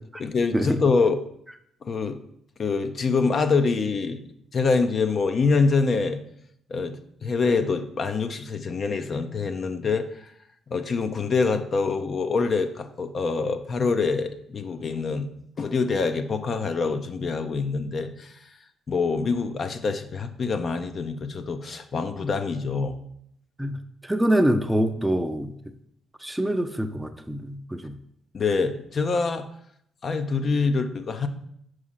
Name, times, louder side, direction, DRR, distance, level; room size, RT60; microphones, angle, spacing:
voice 1, 0.2-1.2 1.8-2.2 2.6-4.2 4.5-6.2 6.7-10.3 10.7-15.3 15.6-18.3 18.9-23.0 28.3-29.5 30.0-31.3, left 4 dB, 45° left, 8 dB, 0.6 m, -25 dB
voice 2, 24.0-25.5 26.2-27.9, right 1 dB, 5° right, 8 dB, 0.6 m, -25 dB
4.9 x 4.8 x 5.6 m, 0.72 s
cardioid pair, 90°, 0 cm